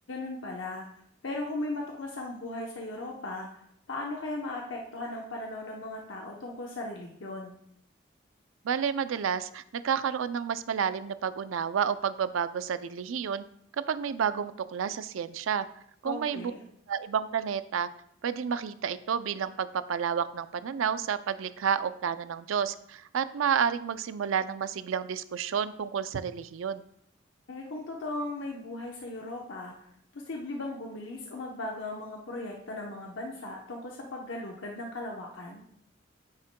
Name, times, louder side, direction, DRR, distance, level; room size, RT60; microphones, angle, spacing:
voice 1, 0.1-0.9 1.2-3.6 3.9-7.6 16.0-16.6 27.5-29.7 30.1-35.6, left 2 dB, 75° left, -1 dB, 0.8 m, -37 dB
voice 2, 8.6-13.4 13.9-15.7 16.0-16.5 16.9-17.9 18.2-26.8, right 7 dB, 85° right, 13 dB, 0.4 m, -30 dB
9.4 x 6.4 x 2.2 m, 0.71 s
head